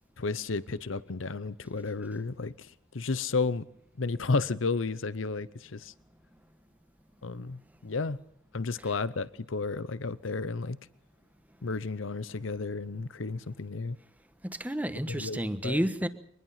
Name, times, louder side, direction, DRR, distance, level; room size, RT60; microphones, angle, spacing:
voice 1, 0.2-2.7 2.9-3.7 4.0-5.9 7.2-8.2 8.5-10.8 11.6-14.0 15.1-15.8, left 3 dB, 75° left, 0.8 m, -32 dB
voice 2, 14.4-16.1, equal, 10° right, 1.3 m, -31 dB
24.0 x 20.5 x 5.8 m
head